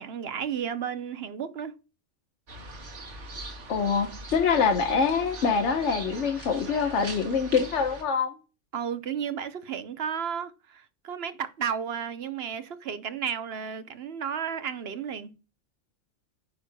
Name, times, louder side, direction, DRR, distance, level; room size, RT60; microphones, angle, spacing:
voice 1, 0.0-1.7 8.7-15.3, right 7 dB, 60° right, 1.0 m, -33 dB
sound 1, 2.5-8.0, right 2 dB, 90° right, 2.0 m, -41 dB
voice 2, 3.7-8.4, left 5 dB, 75° left, 1.4 m, -25 dB
9.2 x 6.2 x 2.2 m
omnidirectional pair, 1.2 m